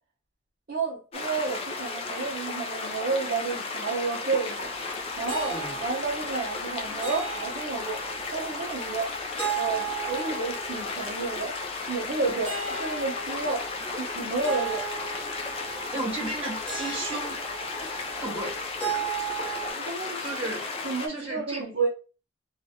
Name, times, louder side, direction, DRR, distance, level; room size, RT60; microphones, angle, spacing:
voice 1, 0.7-4.7 5.2-8.0 8.3-9.1 9.6-11.5 11.9-13.6 14.0-14.8 19.7-20.2 20.8-21.9, right 4 dB, 45° right, 0.6 m, -31 dB
sound 1, 1.1-21.1, left 3 dB, 30° left, 0.4 m, -34 dB
sound 2, 4.6-19.7, right 7 dB, 5° left, 1.1 m, -37 dB
voice 2, 5.5-5.8 15.9-17.4 18.2-18.6 20.2-20.6 21.1-21.7, right 2 dB, 30° right, 1.6 m, -34 dB
2.9 x 2.4 x 2.7 m
head